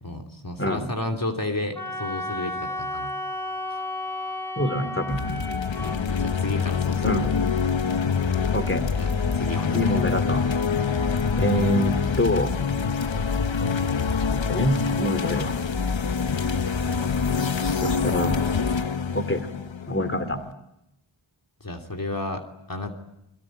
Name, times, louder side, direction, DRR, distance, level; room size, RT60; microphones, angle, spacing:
voice 1, 0.0-3.1 5.8-7.3 9.0-10.0 11.5-11.8 21.6-22.9, left 2 dB, 45° left, 2 dB, 3.1 m, -32 dB
Wind instrument woodwind instrument, 1.8-6.0, left 1 dB, 5° left, 6.5 m, -32 dB
voice 2, 4.6-5.2 7.0-7.3 8.5-8.8 9.7-10.5 11.4-12.5 14.3-15.6 17.6-18.4 19.1-19.5 19.9-20.4, left 1 dB, 25° left, 10 dB, 3.2 m, -26 dB
sound 1, 5.1-20.5, left 5 dB, 70° left, 1.1 m, -25 dB
28.0 x 22.5 x 9.2 m, 0.84 s
wide cardioid pair, 60°, 47 cm